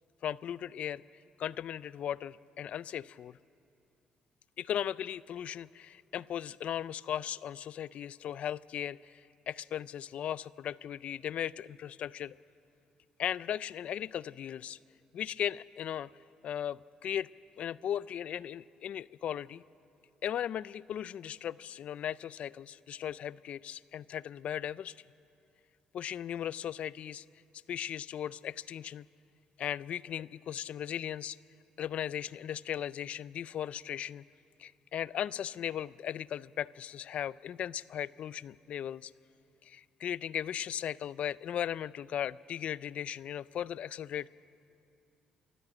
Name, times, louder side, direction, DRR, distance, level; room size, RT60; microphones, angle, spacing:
voice 1, 0.2-1.0 1.4-3.4 4.6-12.4 13.2-14.8 15.1-16.1 16.4-17.3 17.6-19.6 20.2-24.9 25.9-27.2 27.7-29.1 29.6-31.4 31.8-34.2 34.6-39.1 39.6-44.3, left 10 dB, 60° left, 20 dB, 0.4 m, -37 dB
23.5 x 13.5 x 8.9 m, 2.7 s
supercardioid pair, 75°, 2 cm